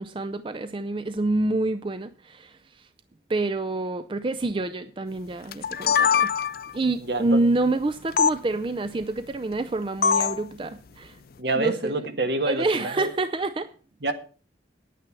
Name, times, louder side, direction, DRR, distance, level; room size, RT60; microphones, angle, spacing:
voice 1, 0.0-2.9 3.3-6.3 6.7-11.2 11.6-12.0 12.5-13.7, right 2 dB, 30° right, 0.4 m, -27 dB
sound 1, 5.5-6.8 8.2-8.3 10.0-10.4, left 7 dB, 55° left, 0.5 m, -22 dB
voice 2, 7.1-7.4 11.4-13.1 14.0-14.1, right 2 dB, 65° right, 1.5 m, -27 dB
9.8 x 9.2 x 6.0 m
head